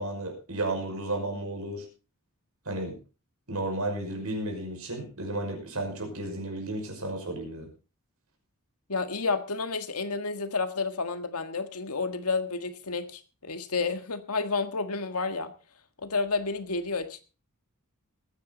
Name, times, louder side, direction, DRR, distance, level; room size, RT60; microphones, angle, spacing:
voice 1, 0.0-1.9 2.7-3.0 3.5-7.7, right 2 dB, 75° right, 3 dB, 5.6 m, -33 dB
voice 2, 8.9-15.5 16.0-17.2, left 4 dB, 85° left, 8 dB, 1.7 m, -30 dB
20.5 x 9.6 x 4.0 m, 0.34 s
head